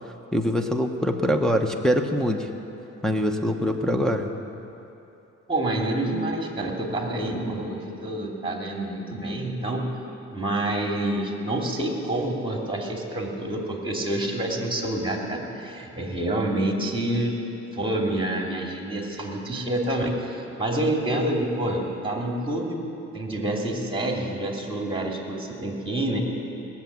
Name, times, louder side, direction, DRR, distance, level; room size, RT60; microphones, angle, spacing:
voice 1, 0.3-2.5 3.0-4.3, equal, ahead, 1 dB, 1.0 m, -23 dB
voice 2, 5.5-9.9 10.3-17.4 17.7-22.8 23.1-26.2, right 1 dB, 15° right, 0 dB, 2.7 m, -27 dB
19.0 x 7.3 x 9.4 m, 2.9 s
cardioid pair, 90°, 30 cm